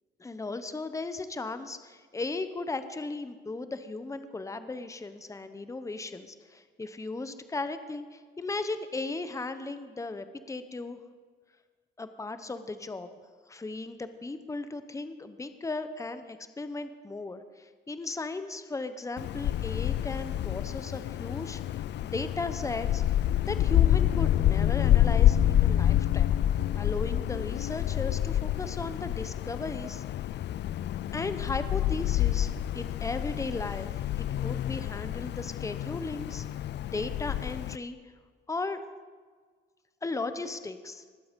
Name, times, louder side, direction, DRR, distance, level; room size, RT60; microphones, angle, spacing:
voice 1, 0.2-11.0 12.0-13.1 13.5-23.0 23.5-26.3 26.7-30.0 31.1-33.9 34.2-36.4 36.8-38.0 38.5-38.8 40.0-41.0, left 3 dB, 15° left, 10 dB, 0.8 m, -36 dB
Wind, 19.2-37.8, left 12 dB, 60° left, 0.4 m, -28 dB
20.5 x 7.8 x 5.2 m, 1.6 s
cardioid pair, 90°, 20 cm